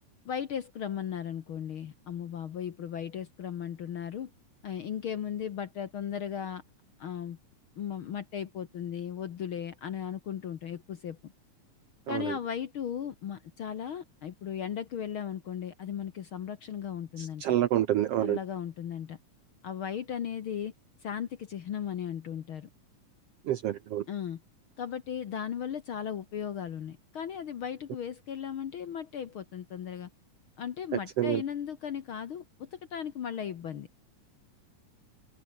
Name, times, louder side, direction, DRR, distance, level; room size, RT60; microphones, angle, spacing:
voice 1, 0.2-4.3 4.6-6.6 7.0-7.4 7.8-11.3 12.1-17.4 18.2-19.2 19.6-20.7 21.0-22.7 24.1-24.4 24.8-30.1 30.6-33.9, left 8 dB, 55° left, 1.5 m, -36 dB
voice 2, 17.2-18.4 23.5-24.0 30.9-31.4, right 12 dB, 70° right, 1.4 m, -28 dB
omnidirectional pair, 3.6 m